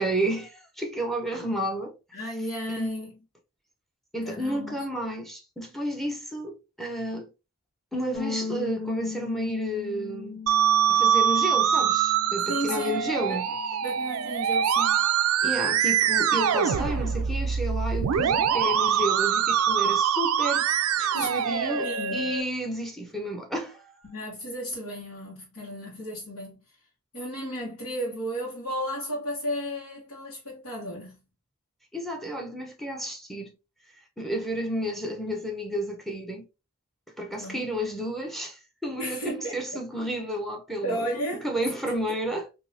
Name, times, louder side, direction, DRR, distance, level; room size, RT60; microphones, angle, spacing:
voice 1, 0.0-2.0 2.8-3.0 4.1-7.3 7.9-10.4 10.9-13.5 15.4-20.7 21.0-24.1 31.9-33.6 34.2-36.5 37.2-41.1 41.4-42.5, right 1 dB, ahead, 0.7 m, -31 dB
voice 2, 2.1-3.2 4.2-4.8 12.5-13.4 13.8-15.1 21.1-22.3 24.0-26.6 27.1-31.2 37.3-37.7 39.0-39.8 40.8-41.5, equal, 85° left, 1.4 m, -34 dB
Bass guitar, 8.1-14.4, left 5 dB, 55° left, 1.6 m, -38 dB
Musical instrument, 10.5-22.4, right 8 dB, 80° right, 0.3 m, -24 dB
3.7 x 2.7 x 2.6 m
head